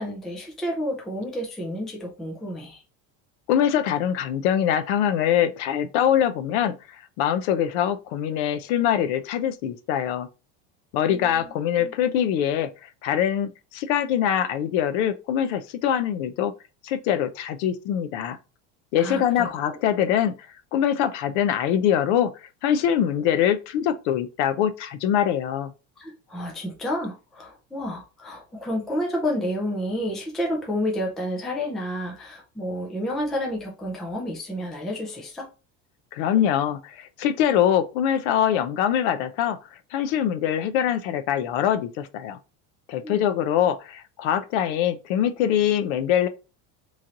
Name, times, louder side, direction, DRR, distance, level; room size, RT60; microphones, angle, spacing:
voice 1, 0.0-2.8 11.1-11.5 11.8-11.9 19.0-19.8 26.0-35.5 43.0-43.2, equal, ahead, 0.3 m, -30 dB
voice 2, 3.5-6.8 7.2-10.3 10.9-16.5 16.8-18.4 18.9-20.3 20.7-22.3 22.6-25.7 36.1-39.6 39.9-42.4 42.9-46.3, left 10 dB, 70° left, 0.7 m, -23 dB
3.7 x 3.1 x 2.7 m
cardioid pair, 175°, 36 cm